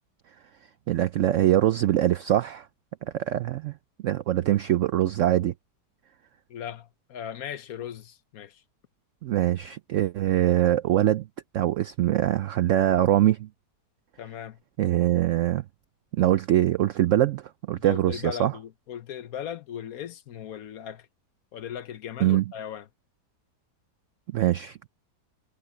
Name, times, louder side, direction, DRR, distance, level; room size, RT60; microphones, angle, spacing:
voice 1, 0.9-2.7 3.1-3.7 4.0-5.5 9.2-11.3 11.5-13.5 14.8-15.6 16.1-18.5 22.2-22.4 24.3-24.9, right 13 dB, 75° right, 0.7 m, -23 dB
voice 2, 6.5-8.6 14.2-14.6 17.7-21.1 21.5-22.9, left 9 dB, 65° left, 1.1 m, -38 dB
omnidirectional pair, 1.8 m